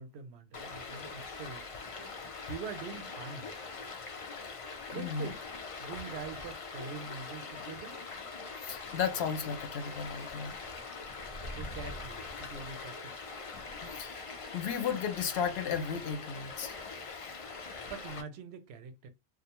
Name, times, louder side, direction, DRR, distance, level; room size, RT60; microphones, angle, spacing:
voice 1, 0.0-1.8 2.5-3.5 4.9-5.4 5.8-8.0 11.6-13.1 17.9-19.1, right 5 dB, 85° right, 0.8 m, -44 dB
Stream, 0.5-18.2, left 4 dB, 50° left, 0.4 m, -43 dB
voice 2, 4.9-5.3 8.6-10.5 13.9-16.8, left 7 dB, 85° left, 0.9 m, -34 dB
2.5 x 2.0 x 2.9 m
omnidirectional pair, 1.1 m